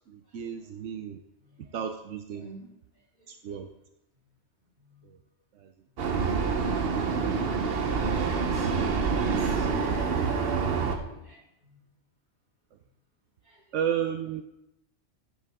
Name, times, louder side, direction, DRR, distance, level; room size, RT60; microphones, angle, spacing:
voice 1, 0.1-1.2 1.7-2.5 3.3-3.7 5.1-5.2 5.6-5.7 13.7-14.4, right 9 dB, 80° right, 6 dB, 1.0 m, -32 dB
voice 2, 1.4-1.7 2.4-3.3 4.8-5.0 7.0-9.7 10.7-11.8 13.4-13.8, right 2 dB, 40° right, -2 dB, 2.3 m, -48 dB
Vehicle, 6.0-11.0, right 5 dB, 55° right, 1.0 m, -27 dB
11.5 x 7.1 x 3.5 m, 0.85 s
omnidirectional pair, 1.2 m